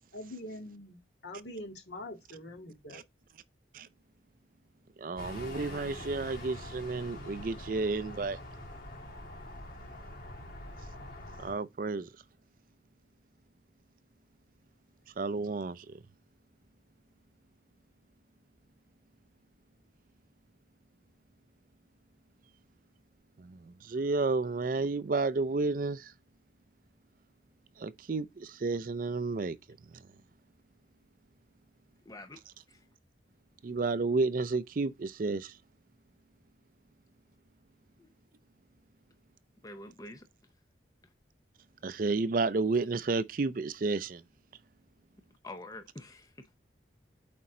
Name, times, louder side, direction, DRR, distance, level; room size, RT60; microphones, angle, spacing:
voice 1, 0.1-3.0, left 1 dB, 70° left, 2.1 m, -44 dB
voice 2, 5.0-8.4 11.4-12.1 15.2-16.0 23.4-26.1 27.8-29.6 29.9-30.0 33.6-35.5 41.8-44.2, right 3 dB, 45° right, 0.4 m, -31 dB
sound 1, 5.2-11.5, left 1 dB, 50° left, 2.7 m, -44 dB
voice 3, 32.0-32.4 32.7-32.9 38.0-38.1 39.6-40.3 41.0-41.1 45.4-46.6, left 2 dB, 20° left, 0.7 m, -47 dB
8.7 x 4.1 x 3.8 m
head